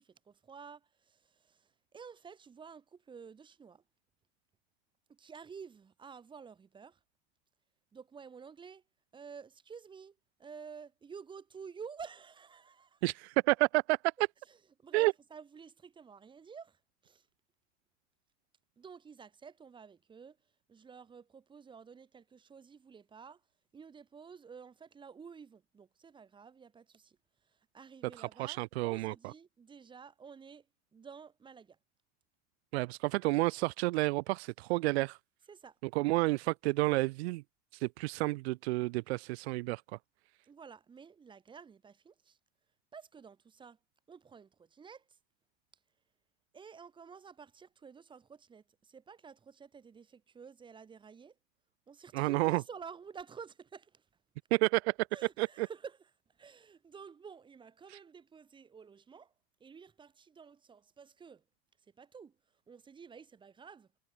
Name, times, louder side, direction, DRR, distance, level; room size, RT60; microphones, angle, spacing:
voice 1, 0.0-3.8 5.1-7.0 7.9-8.8 9.1-13.0 14.5-17.3 18.8-20.4 20.7-23.4 23.7-27.2 27.4-30.7 30.9-31.8 35.5-35.8 40.5-42.4 42.9-43.8 44.1-45.2 46.5-51.4 51.9-54.1 55.1-59.3 59.6-61.4 62.0-62.4 62.7-63.9, right 6 dB, 15° right, 5.2 m, -51 dB
voice 2, 13.0-14.1 14.9-15.1 28.2-29.3 32.7-35.2 35.9-37.4 37.8-39.8 52.1-52.6 54.5-54.9 55.4-55.7, right 22 dB, 80° right, 1.2 m, -30 dB
cardioid pair, 175°, 32 cm